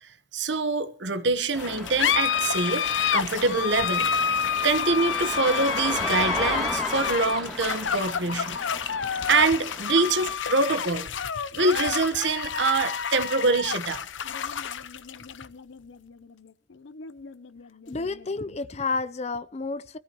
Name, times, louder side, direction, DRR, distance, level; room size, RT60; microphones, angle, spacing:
voice 1, 0.0-8.6 9.3-11.1 11.5-14.0, right 3 dB, 70° right, 1.2 m, -25 dB
sound 1, 1.5-18.5, left 7 dB, 85° left, 0.7 m, -29 dB
sound 2, 1.5-10.4, equal, ahead, 2.8 m, -36 dB
voice 2, 17.9-20.0, left 3 dB, 35° left, 0.6 m, -30 dB
23.5 x 14.0 x 3.0 m
head